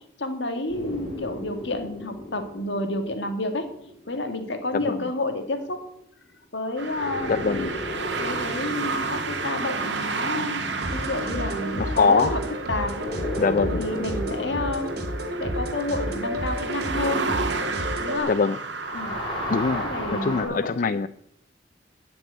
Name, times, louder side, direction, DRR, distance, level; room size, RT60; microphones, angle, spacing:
voice 1, 0.2-3.6 4.1-5.8 6.5-7.7 8.2-12.4 12.7-12.9 13.7-14.9 15.4-17.3 18.0-18.3 18.9-19.1 19.8-20.7, left 2 dB, 70° left, 6 dB, 1.9 m, -30 dB
sound 1, 0.7-5.2 6.9-12.4 12.8-18.4 18.7-20.4, left 1 dB, 30° left, 5.3 m, -36 dB
voice 2, 4.7-5.1 7.3-7.7 11.8-12.3 13.4-13.8 18.3-18.6 19.5-19.8 20.1-21.1, left 5 dB, 45° left, 13 dB, 0.4 m, -23 dB
sound 2, 6.8-20.0, right 4 dB, 75° right, 1.8 m, -32 dB
sound 3, 10.8-18.2, equal, 60° right, 2.3 m, -31 dB
13.0 x 6.1 x 8.8 m, 0.75 s
head